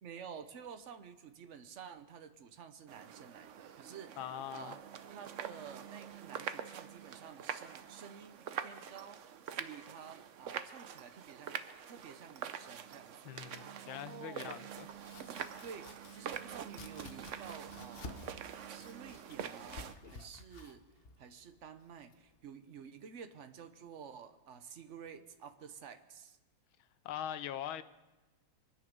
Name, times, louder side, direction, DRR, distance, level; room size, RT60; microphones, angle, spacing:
voice 1, 0.0-4.2 4.5-4.8 5.1-9.2 9.5-11.6 11.9-14.6 15.6-18.3 18.7-20.9 21.2-26.4, right 7 dB, 55° right, 0.9 m, -51 dB
sound 1, 2.9-19.9, right 8 dB, 85° right, 0.6 m, -45 dB
voice 2, 4.2-4.8 13.2-14.9 27.0-27.8, left 10 dB, 90° left, 1.6 m, -42 dB
Domestic sounds home sounds, 14.7-22.5, left 3 dB, 45° left, 0.8 m, -53 dB
24.5 x 9.6 x 5.3 m
omnidirectional pair, 2.2 m